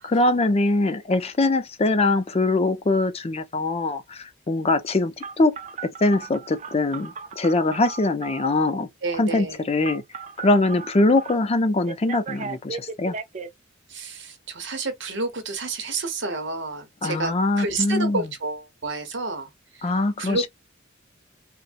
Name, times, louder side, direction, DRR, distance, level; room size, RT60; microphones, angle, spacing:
voice 1, 0.0-5.5 5.8-8.9 9.2-10.0 10.4-13.1 17.0-18.2 19.8-20.5, left 2 dB, 30° left, 0.5 m, -22 dB
Telephone, 5.2-8.6 9.8-11.3 11.9-13.5, right 5 dB, 35° right, 0.4 m, -36 dB
voice 2, 9.0-9.6 13.9-19.9 20.2-20.5, right 3 dB, 65° right, 1.1 m, -30 dB
4.0 x 2.1 x 2.4 m
head